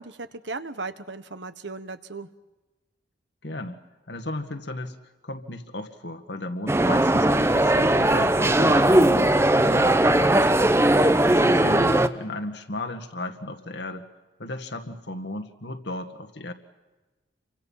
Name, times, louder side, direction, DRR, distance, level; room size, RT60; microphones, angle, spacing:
voice 1, 0.0-2.3 10.7-11.1, right 3 dB, 70° right, 12 dB, 1.2 m, -36 dB
voice 2, 3.4-3.8 4.1-5.0 5.2-10.7 11.3-14.1 14.4-16.5, left 1 dB, 65° left, 7 dB, 1.9 m, -34 dB
sound 1, 6.7-12.1, right 1 dB, 15° right, 0.7 m, -19 dB
29.5 x 24.5 x 5.7 m, 1.2 s
head